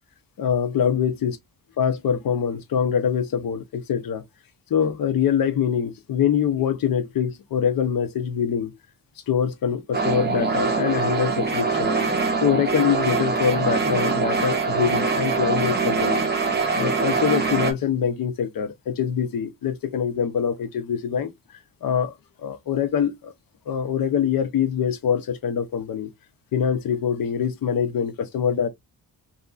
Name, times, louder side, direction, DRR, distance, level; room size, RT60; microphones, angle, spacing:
voice 1, 0.4-1.4 1.8-4.2 4.7-8.8 9.3-12.0 12.4-16.2 16.7-21.3 21.8-23.3 23.7-26.1 26.5-28.7, left 8 dB, 55° left, 0.6 m, -24 dB
sound 1, 9.9-17.7, right 4 dB, 25° right, 0.6 m, -23 dB
2.8 x 2.6 x 2.3 m
wide cardioid pair, 155°, 41 cm